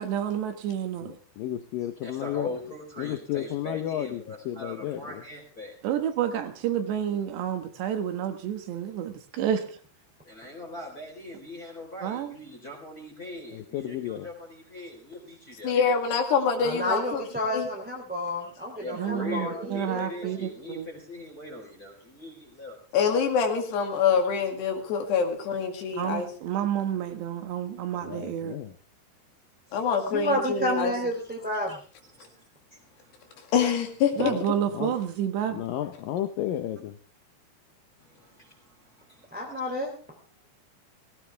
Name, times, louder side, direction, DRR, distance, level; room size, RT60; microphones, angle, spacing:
voice 1, 0.0-1.1 5.8-9.8 12.0-12.3 18.9-20.9 25.9-28.6 34.2-35.6, right 9 dB, 75° right, 7 dB, 3.5 m, -30 dB
voice 2, 1.0-2.5 3.0-5.2 13.5-14.3 28.0-28.7 34.2-34.4 34.7-35.0 35.5-37.0, left 12 dB, 85° left, 9 dB, 1.9 m, -33 dB
voice 3, 2.0-5.7 10.2-15.7 18.4-18.5 18.8-22.8 29.7-29.8 31.7-31.8 32.1-33.4 38.0-39.6, left 1 dB, 20° left, -1 dB, 4.1 m, -41 dB
voice 4, 15.6-17.2 17.5-17.7 22.9-26.3 29.7-30.9 33.5-34.3, left 6 dB, 70° left, 4 dB, 4.1 m, -25 dB
voice 5, 16.6-20.0 30.1-31.8 39.3-39.9, equal, 5° right, -1 dB, 2.2 m, -30 dB
18.0 x 17.5 x 3.5 m, 0.39 s
omnidirectional pair, 5.2 m